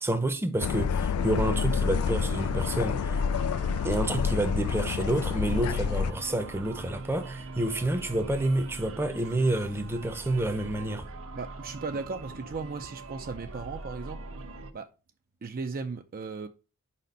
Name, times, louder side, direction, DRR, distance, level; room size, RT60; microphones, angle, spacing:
voice 1, 0.0-3.2 3.8-11.1, right 1 dB, 10° right, 0.7 m, -29 dB
sound 1, 0.6-6.1, left 6 dB, 85° left, 0.3 m, -28 dB
sound 2, 1.2-14.7, right 3 dB, 70° right, 0.9 m, -42 dB
voice 2, 11.3-14.2 14.7-14.9 15.4-16.5, right 4 dB, 40° right, 0.5 m, -36 dB
5.2 x 4.2 x 5.2 m
head